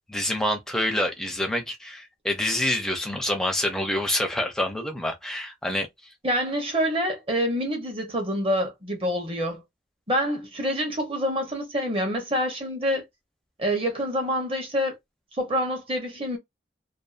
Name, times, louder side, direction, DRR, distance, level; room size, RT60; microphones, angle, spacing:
voice 1, 0.1-6.1, left 1 dB, 5° left, 0.5 m, -27 dB
voice 2, 6.2-9.6 10.1-13.0 13.6-14.9 15.4-16.4, equal, 30° right, 0.8 m, -26 dB
2.6 x 2.2 x 2.4 m
head